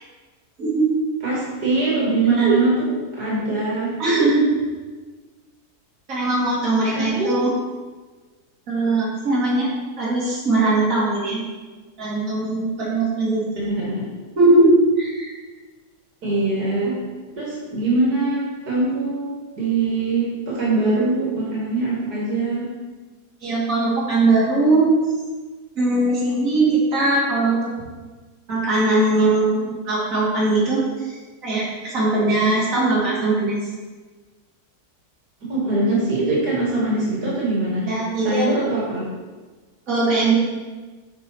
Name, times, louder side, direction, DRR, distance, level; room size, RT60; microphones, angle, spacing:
voice 1, 0.6-0.9 2.4-2.5 4.0-4.5 6.1-7.5 8.7-9.7 10.0-11.5 12.0-13.4 14.4-15.3 23.4-24.9 25.8-27.9 28.5-31.2 31.4-33.6 37.9-38.5 39.9-40.4, right 2 dB, 55° right, -7 dB, 2.6 m, -20 dB
voice 2, 1.2-3.9 7.0-7.4 13.6-14.0 16.2-17.0 17.3-22.6 35.5-37.9 38.2-39.1, right 2 dB, 75° right, -6 dB, 2.6 m, -22 dB
8.6 x 4.8 x 4.5 m, 1.3 s
omnidirectional pair, 1.7 m